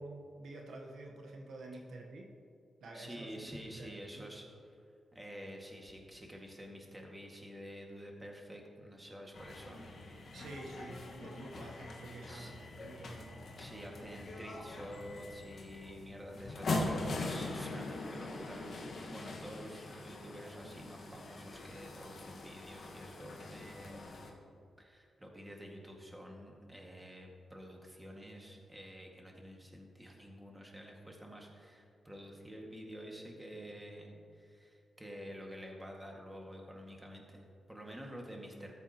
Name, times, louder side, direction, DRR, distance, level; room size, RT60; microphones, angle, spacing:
voice 1, 0.0-2.3 2.8-4.3 10.3-13.5 13.8-13.9, right 2 dB, 80° right, 1 dB, 1.1 m, -49 dB
voice 2, 2.9-4.9 5.1-9.9 12.3-12.5 13.6-24.3 24.8-38.7, equal, 15° right, 0 dB, 1.9 m, -49 dB
sound 1, 9.3-24.3, left 2 dB, 65° left, 1.5 m, -42 dB
13.5 x 8.3 x 3.0 m, 2.4 s
cardioid pair, 65°, 0 cm